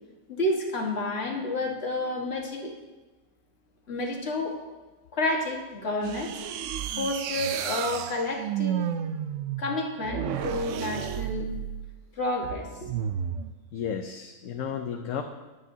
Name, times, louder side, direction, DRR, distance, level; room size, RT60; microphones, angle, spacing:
voice 1, 0.3-2.7 3.9-4.6 5.1-6.3 7.0-8.8 9.6-11.5 12.2-12.9, left 2 dB, 50° left, 0 dB, 1.8 m, -30 dB
sound 1, 6.0-12.0 12.9-13.5, right 9 dB, 70° right, 0.9 m, -32 dB
voice 2, 13.7-15.2, left 7 dB, 70° left, 4 dB, 1.0 m, -33 dB
20.5 x 8.6 x 2.7 m, 1.2 s
omnidirectional pair, 1.4 m